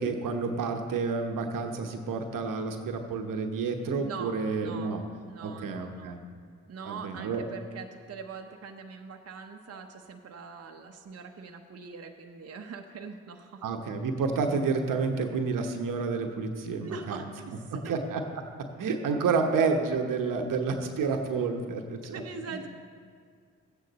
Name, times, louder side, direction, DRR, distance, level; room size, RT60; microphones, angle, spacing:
voice 1, 0.0-5.0 5.4-6.2 6.8-7.4 13.6-17.2 17.7-18.2 18.8-22.2, right 4 dB, 65° right, 5 dB, 1.1 m, -29 dB
voice 2, 4.0-4.4 4.6-5.0 5.3-6.2 6.7-13.6 16.8-17.9 22.0-22.7, right 5 dB, 45° right, 3 dB, 0.9 m, -42 dB
13.0 x 9.2 x 4.1 m, 2.1 s
hypercardioid pair, 45°, 34 cm